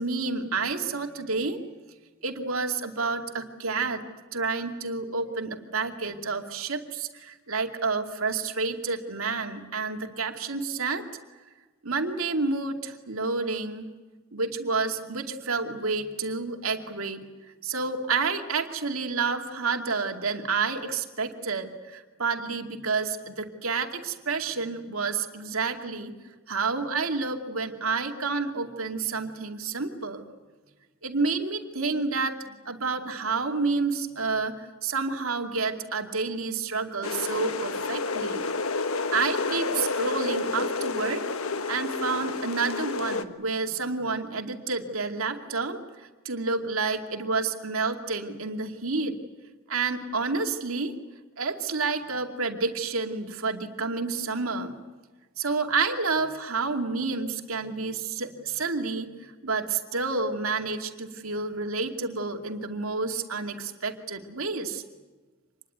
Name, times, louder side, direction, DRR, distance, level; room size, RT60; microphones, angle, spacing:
voice 1, 0.0-1.6 2.2-4.0 4.3-11.0 11.8-13.9 14.3-17.2 17.6-30.2 31.0-38.5 39.1-41.2 41.7-49.2 49.7-50.9 51.4-54.8 55.4-64.8, right 4 dB, 85° right, 4 dB, 2.5 m, -29 dB
sound 1, 37.0-43.2, left 3 dB, 90° left, 1.4 m, -30 dB
26.5 x 21.0 x 9.4 m, 1.3 s
head